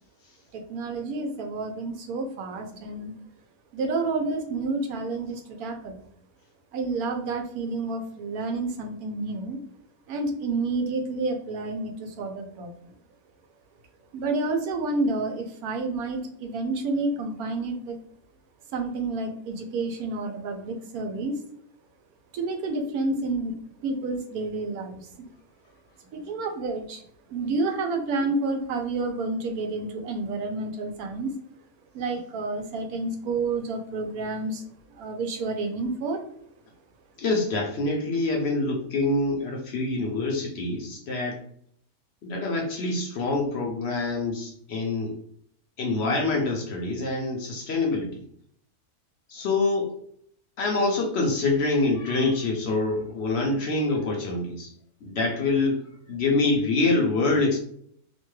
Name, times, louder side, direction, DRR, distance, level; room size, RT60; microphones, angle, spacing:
voice 1, 0.5-3.1 3.7-6.0 6.7-9.6 10.1-12.9 14.1-18.0 18.7-21.4 22.3-23.5 23.8-25.1 26.1-27.0 27.3-31.3 31.9-34.6 34.9-36.2, right 3 dB, 80° right, 4 dB, 1.1 m, -29 dB
voice 2, 37.2-41.4 42.2-45.1 45.8-48.2 49.3-50.0 50.6-54.7 55.0-55.8 56.1-57.6, left 3 dB, 60° left, 1 dB, 0.7 m, -25 dB
2.9 x 2.2 x 3.1 m, 0.65 s
omnidirectional pair, 1.6 m